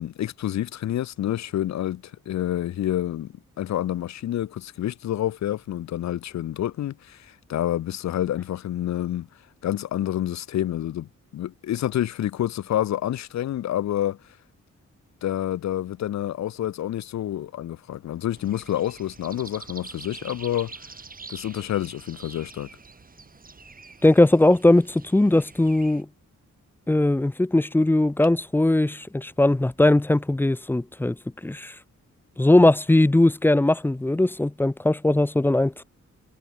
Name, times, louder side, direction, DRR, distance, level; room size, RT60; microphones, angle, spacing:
voice 1, 0.0-9.3 9.6-14.2 15.2-20.7 21.3-22.7, left 12 dB, 65° left, 0.5 m, -28 dB
sound 1, 18.4-26.0, right 4 dB, 30° right, 2.5 m, -45 dB
voice 2, 24.0-26.1 26.9-31.2 31.4-31.8 32.4-35.8, left 1 dB, 5° left, 0.4 m, -19 dB
wide cardioid pair, 160°, 30 cm